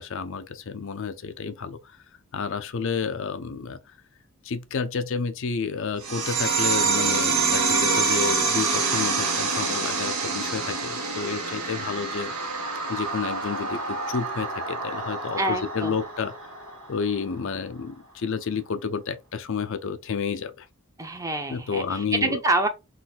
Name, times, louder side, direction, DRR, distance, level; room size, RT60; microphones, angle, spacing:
voice 1, 0.0-1.8 2.3-3.8 4.4-12.5 12.9-16.5 16.9-20.7 21.5-22.4, left 5 dB, 65° left, 0.5 m, -30 dB
sound 1, 6.0-17.0, right 4 dB, 90° right, 1.5 m, -26 dB
voice 2, 15.4-15.9 21.0-22.7, right 2 dB, 15° right, 0.7 m, -26 dB
4.0 x 2.6 x 3.9 m
head